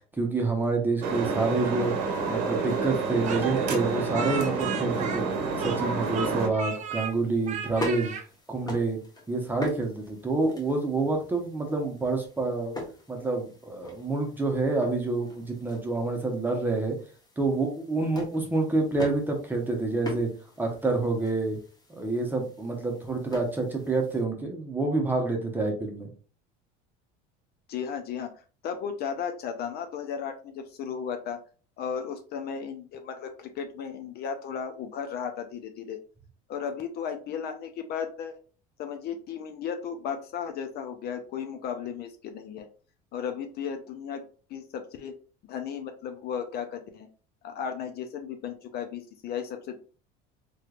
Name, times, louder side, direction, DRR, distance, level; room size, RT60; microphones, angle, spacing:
voice 1, 0.2-1.9 2.3-5.2 5.6-8.1 8.5-9.0 9.3-12.7 13.1-17.0 17.4-20.3 20.6-21.6 21.9-26.1, right 3 dB, 10° right, 1 dB, 0.9 m, -28 dB
sound 1, 1.0-6.5, right 4 dB, 85° right, 0.8 m, -29 dB
Speech, 3.3-5.9 6.1-7.1 7.5-8.2, right 5 dB, 35° right, 0.5 m, -35 dB
sound 2, 6.7-24.2, left 1 dB, 20° left, 1.2 m, -42 dB
voice 2, 27.7-28.3 28.6-31.4 31.8-36.0 36.5-38.4 38.8-42.7 43.1-44.2 44.5-45.1 45.5-47.1 47.4-49.8, left 7 dB, 50° left, 7 dB, 0.6 m, -35 dB
3.2 x 3.1 x 2.4 m, 0.37 s
supercardioid pair, 115°, 21 cm